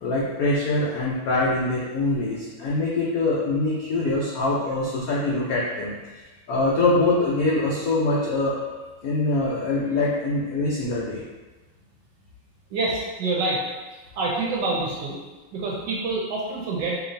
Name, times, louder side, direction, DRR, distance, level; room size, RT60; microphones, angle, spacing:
voice 1, 0.0-5.9 6.5-8.6 9.0-11.2, left 2 dB, 85° left, -6 dB, 0.7 m, -24 dB
voice 2, 12.7-13.6 14.2-15.2 15.5-17.0, right 2 dB, 70° right, -3 dB, 1.2 m, -26 dB
4.3 x 3.0 x 2.6 m, 1.2 s
omnidirectional pair, 2.3 m